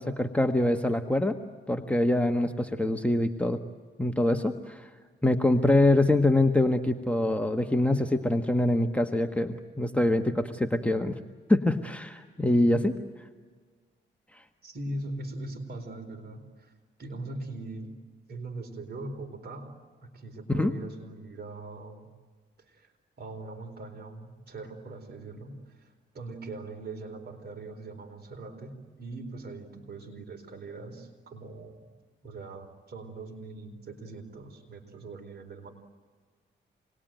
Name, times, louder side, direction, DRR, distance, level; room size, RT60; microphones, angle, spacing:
voice 1, 0.0-1.4 1.7-3.6 4.0-4.9 5.2-11.1 11.5-12.9 20.5-20.7, left 1 dB, 5° left, 4 dB, 1.4 m, -24 dB
voice 2, 14.6-16.7 17.0-18.0 18.3-22.1 22.6-22.9 23.2-31.8 32.2-35.7, right 2 dB, 55° right, 5 dB, 4.2 m, -41 dB
27.0 x 20.5 x 9.1 m, 1.5 s
cardioid pair, 75°, 20 cm